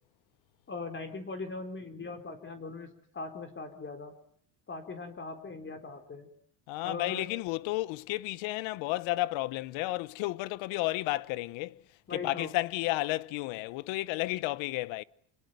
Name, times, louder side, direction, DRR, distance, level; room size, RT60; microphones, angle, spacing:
voice 1, 0.7-4.1 4.7-6.3 6.8-7.3 12.1-12.5, left 3 dB, 25° left, 4.1 m, -40 dB
voice 2, 6.7-11.8 12.1-15.0, left 19 dB, 90° left, 1.1 m, -32 dB
27.5 x 22.0 x 9.3 m
cardioid pair, 135°, 45 cm